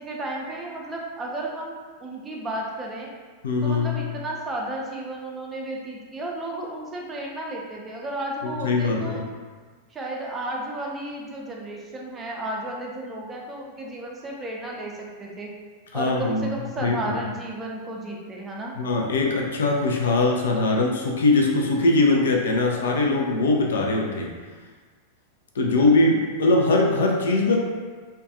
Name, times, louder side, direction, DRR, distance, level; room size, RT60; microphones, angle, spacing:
voice 1, 0.0-3.1 3.6-9.2 9.9-15.5 15.9-18.7, right 1 dB, 20° right, -2 dB, 0.4 m, -33 dB
voice 2, 3.4-4.0 8.6-9.2 15.9-16.5 16.8-17.1 18.8-24.3 25.6-27.6, left 2 dB, 65° left, 0 dB, 0.4 m, -21 dB
2.3 x 2.2 x 2.6 m, 1.5 s
figure-of-eight pair, 90°, 0 cm